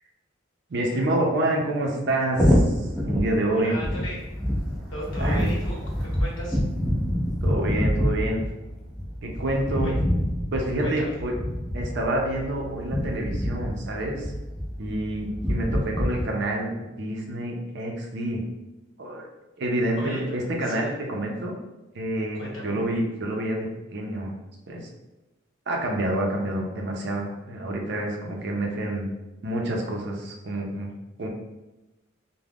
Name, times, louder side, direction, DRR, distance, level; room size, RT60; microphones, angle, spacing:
voice 1, 0.7-3.8 5.2-5.5 7.4-8.4 9.2-10.0 10.5-11.3 11.7-14.3 14.8-18.4 19.0-19.3 19.6-21.6 21.9-23.7 23.9-24.3 24.7-24.9 25.7-29.1 29.4-30.9 31.2-31.3, right 1 dB, 55° right, 0 dB, 0.5 m, -28 dB
sound 1, 2.3-16.2, equal, ahead, 0.4 m, -26 dB
voice 2, 3.5-4.2 4.9-6.6 9.8-9.9 10.8-11.2 19.9-20.4 20.6-20.9 22.3-22.7, equal, 65° left, -4 dB, 0.9 m, -36 dB
2.4 x 2.1 x 3.4 m, 1.1 s
head